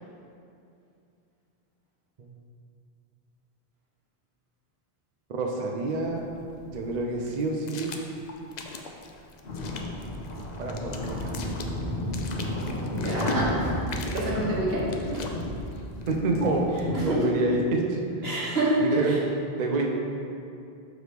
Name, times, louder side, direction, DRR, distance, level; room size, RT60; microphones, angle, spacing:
voice 1, 5.3-6.2 6.7-7.9 10.6-11.3 16.1-16.8 17.0-18.0 18.8-19.2 19.5-19.9, right 3 dB, 50° right, 0 dB, 0.5 m, -27 dB
sound 1, 5.9-16.9, left 3 dB, 55° left, 0.5 m, -41 dB
sound 2, 9.4-17.0, left 1 dB, 70° left, 1.3 m, -32 dB
voice 2, 12.9-13.7 14.0-15.2 16.9-17.2 18.2-18.7 19.0-19.2, right 1 dB, 70° right, -6 dB, 1.7 m, -28 dB
6.5 x 4.6 x 3.4 m, 2.6 s
omnidirectional pair, 1.1 m